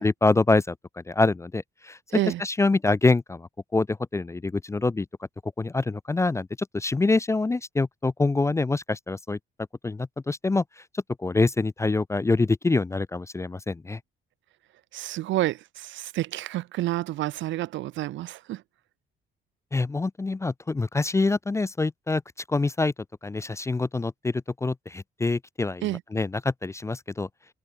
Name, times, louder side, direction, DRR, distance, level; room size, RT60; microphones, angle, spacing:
voice 1, 0.0-2.0 2.4-5.1 5.4-9.4 9.8-14.0 19.7-22.2 22.5-22.9 23.2-27.3, left 3 dB, 15° left, 0.4 m, -25 dB
voice 2, 2.1-2.4 14.9-18.6 25.8-26.0, right 15 dB, 70° right, 0.4 m, -29 dB
cardioid pair, 90°, 20 cm